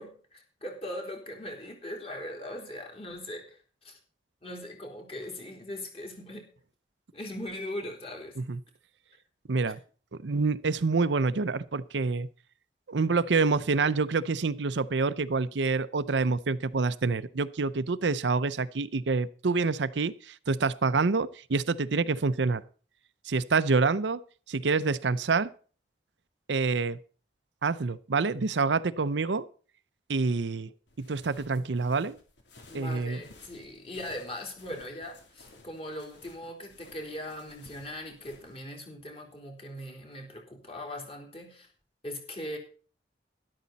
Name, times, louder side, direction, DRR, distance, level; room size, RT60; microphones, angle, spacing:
voice 1, 0.0-4.0 4.4-6.5 7.1-8.4 32.7-41.7 42.0-42.6, left 1 dB, 35° left, 3 dB, 3.6 m, -40 dB
voice 2, 9.5-9.8 10.2-12.3 12.9-22.6 23.3-24.2 24.5-25.5 26.5-27.0 27.6-29.4 30.1-30.7 31.0-32.2 32.7-33.2, right 4 dB, 85° right, 14 dB, 0.7 m, -27 dB
sound 1, 30.9-38.6, left 2 dB, 85° left, 3.2 m, -56 dB
12.5 x 12.0 x 4.1 m, 0.40 s
head